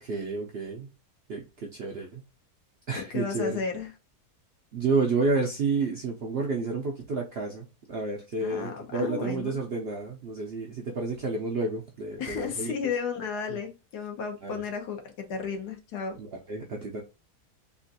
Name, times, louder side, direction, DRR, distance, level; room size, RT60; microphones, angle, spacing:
voice 1, 0.0-0.9 1.3-2.2 2.9-3.6 4.7-12.7 13.5-13.6 14.4-14.6 16.2-17.0, right 3 dB, 65° right, 0.6 m, -30 dB
voice 2, 2.9-3.9 8.4-9.5 12.2-16.1, left 6 dB, 90° left, 1.4 m, -33 dB
3.7 x 2.5 x 2.6 m
omnidirectional pair, 1.6 m